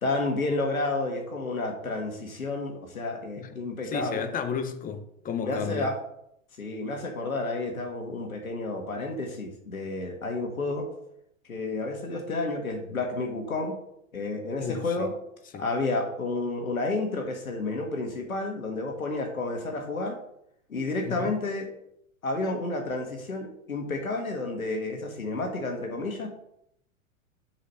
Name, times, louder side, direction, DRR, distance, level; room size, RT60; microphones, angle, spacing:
voice 1, 0.0-4.3 5.4-6.0 6.6-10.9 11.4-13.8 14.1-15.1 15.6-20.2 20.7-21.7 22.2-26.3, left 2 dB, 85° left, 1.9 m, -30 dB
voice 2, 3.8-5.9 14.6-15.1 15.5-15.6 21.0-21.4, left 7 dB, 20° left, 0.9 m, -33 dB
6.5 x 5.0 x 6.1 m
hypercardioid pair, 105°, 41 cm